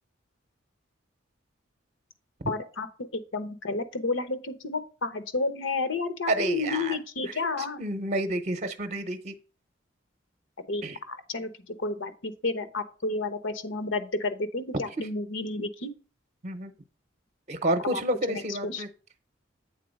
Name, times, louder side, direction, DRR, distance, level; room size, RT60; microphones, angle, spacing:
voice 1, 2.5-2.9 3.1-7.8 10.7-15.9 17.9-18.0 18.3-18.8, left 3 dB, 85° left, 11 dB, 1.0 m, -31 dB
voice 2, 6.3-7.0 7.8-9.3 10.8-11.0 15.0-15.1 16.4-16.7 17.5-18.9, right 1 dB, 35° right, 9 dB, 0.6 m, -29 dB
8.3 x 4.0 x 5.2 m, 0.36 s
head